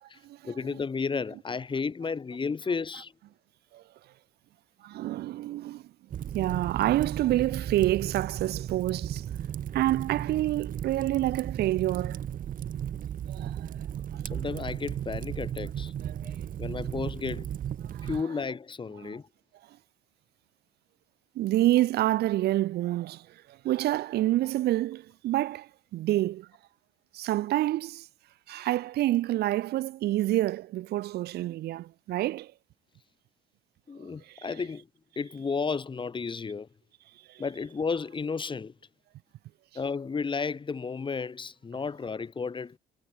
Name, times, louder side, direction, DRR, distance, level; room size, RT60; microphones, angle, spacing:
voice 1, 0.4-3.1 14.3-15.9 16.2-17.5 18.0-19.3 33.9-34.9 35.2-36.7 37.4-38.7 39.7-42.8, left 5 dB, 30° left, 5.7 m, -33 dB
voice 2, 4.8-5.8 6.3-9.2 9.7-12.2 13.3-13.6 14.1-14.2 16.1-16.2 17.9-18.1 19.0-19.2 21.4-26.5 27.1-28.1 28.5-32.5 34.4-34.5 37.3-37.4, right 15 dB, 75° right, 7.2 m, -28 dB
Fire, 6.1-18.2, right 10 dB, 55° right, 5.1 m, -35 dB
cardioid pair, 100°, 17 cm